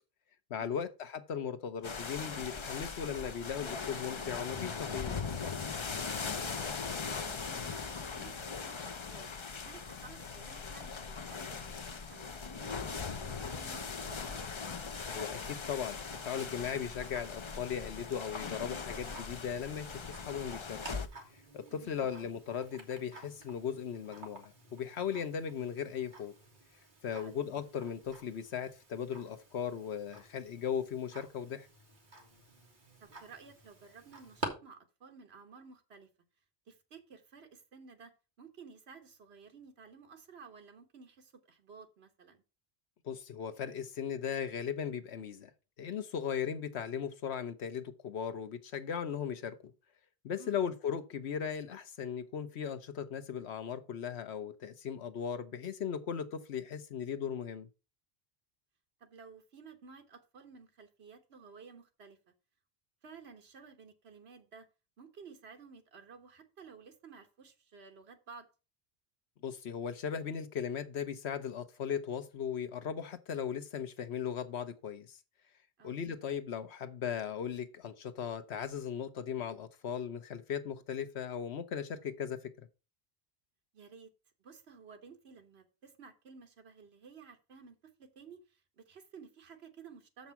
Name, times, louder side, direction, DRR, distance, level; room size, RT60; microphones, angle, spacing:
voice 1, 0.5-5.2 15.0-20.8 21.5-26.3 27.0-31.7 43.0-45.5 45.8-49.6 50.2-57.7 69.4-75.2 75.8-82.7, left 8 dB, 80° left, 1.1 m, -37 dB
sound 1, 1.8-21.1, left 5 dB, 35° left, 0.5 m, -40 dB
voice 2, 6.4-9.3 9.6-14.4 21.7-22.0 27.1-27.4 33.0-36.1 36.7-38.1 38.4-42.4 50.4-50.6 59.0-62.2 63.0-64.7 65.0-68.5 75.8-76.0 83.7-84.1 84.4-90.3, right 5 dB, 75° right, 1.4 m, -54 dB
Tick-tock, 15.6-34.5, right 1 dB, 45° right, 1.9 m, -51 dB
7.1 x 5.3 x 5.8 m
omnidirectional pair, 1.1 m